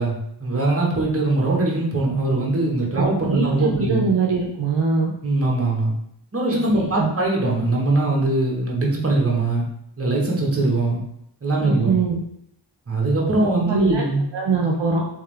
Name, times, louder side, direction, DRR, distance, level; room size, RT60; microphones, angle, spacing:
voice 1, 0.0-4.1 5.2-5.9 6.3-9.6 10.0-11.0 11.4-11.9 12.9-14.2, right 2 dB, 30° right, -2 dB, 1.3 m, -21 dB
voice 2, 2.9-5.1 6.5-7.1 11.7-12.2 13.6-14.0 14.3-15.1, right 4 dB, 65° right, -1 dB, 0.7 m, -22 dB
3.5 x 3.5 x 3.3 m, 0.74 s
cardioid pair, 50°, 46 cm